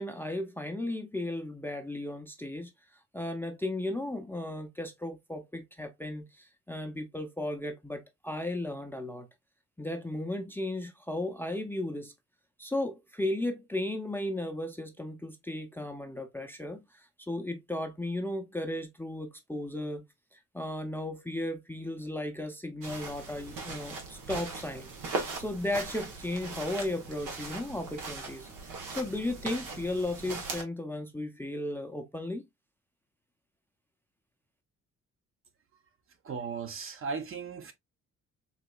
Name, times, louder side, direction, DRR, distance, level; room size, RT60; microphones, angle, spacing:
voice 1, 0.0-9.3 9.8-12.1 12.6-20.0 20.3-32.4, left 1 dB, 5° left, 0.5 m, -35 dB
sound 1, 22.8-30.6, right 3 dB, 90° right, 1.1 m, -39 dB
voice 2, 36.2-37.7, right 5 dB, 45° right, 0.8 m, -36 dB
3.9 x 2.8 x 2.2 m
cardioid pair, 90°, 30 cm